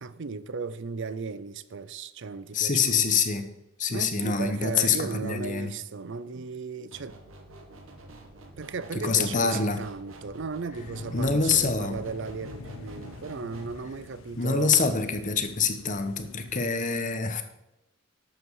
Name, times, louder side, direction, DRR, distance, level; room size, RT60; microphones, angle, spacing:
voice 1, 0.0-3.2 3.9-7.2 8.6-14.9 16.6-16.7, right 4 dB, 60° right, 0.5 m, -36 dB
voice 2, 2.5-3.5 3.8-5.7 9.0-9.8 11.1-12.0 14.4-17.4, left 5 dB, 40° left, 1.1 m, -25 dB
sound 1, 6.9-13.8, right 1 dB, 75° right, 1.9 m, -48 dB
sound 2, 10.8-16.7, left 4 dB, 75° left, 0.6 m, -44 dB
11.5 x 7.9 x 4.8 m
head